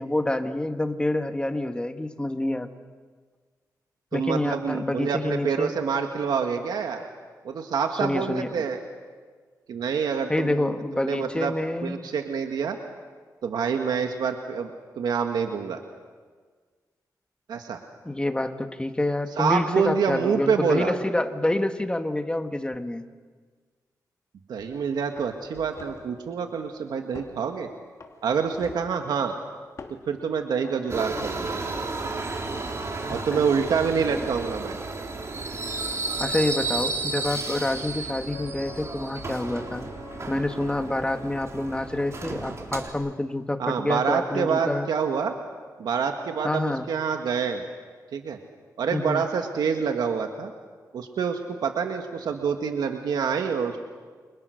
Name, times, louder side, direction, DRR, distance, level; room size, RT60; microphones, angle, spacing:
voice 1, 0.0-2.7 4.1-5.7 8.0-8.6 10.3-12.0 18.0-23.1 33.3-33.5 34.1-34.3 36.2-39.9 40.3-44.9 46.4-46.9 48.9-49.2, left 1 dB, 15° left, 7 dB, 1.8 m, -27 dB
voice 2, 4.1-7.1 7.4-8.8 9.7-11.5 11.8-12.8 13.4-14.7 15.0-15.8 17.5-17.8 19.4-20.9 24.5-27.7 28.2-29.3 30.1-31.6 33.1-34.8 43.6-45.3 45.8-47.6 48.1-48.4 48.8-50.5 50.9-53.8, right 6 dB, 85° right, 5 dB, 1.8 m, -27 dB
sound 1, 24.6-24.8 25.2-26.1 27.1-27.4 28.0-29.0 29.8-30.1 30.6-31.3, left 4 dB, 50° left, 2.9 m, -45 dB
Subway metro underground, 30.9-42.9, right 3 dB, 45° right, 3.6 m, -33 dB
Wind instrument woodwind instrument, 38.3-41.8, left 2 dB, 75° left, 4.8 m, -44 dB
29.5 x 26.5 x 6.5 m, 1.5 s
cardioid pair, 90°, 7 cm